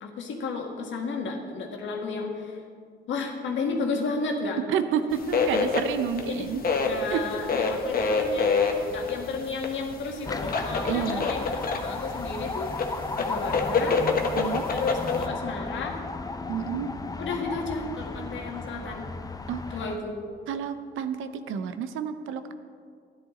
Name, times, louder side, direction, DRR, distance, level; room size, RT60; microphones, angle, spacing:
voice 1, 0.0-2.6 3.1-4.7 6.3-6.5 6.8-8.6 8.8-12.7 13.2-14.0 14.7-16.0 17.2-19.1 19.7-20.2, left 4 dB, 70° left, 2 dB, 1.7 m, -32 dB
voice 2, 4.7-6.6 7.1-7.2 10.8-11.3 14.4-14.7 16.5-16.9 19.5-19.8 20.5-22.5, right 7 dB, 85° right, 10 dB, 0.7 m, -30 dB
sound 1, 5.1-15.2, left 4 dB, 50° left, 1.2 m, -28 dB
sound 2, 10.3-20.0, left 3 dB, 20° left, 0.6 m, -34 dB
13.0 x 10.5 x 3.8 m, 2.1 s
cardioid pair, 90°, 20 cm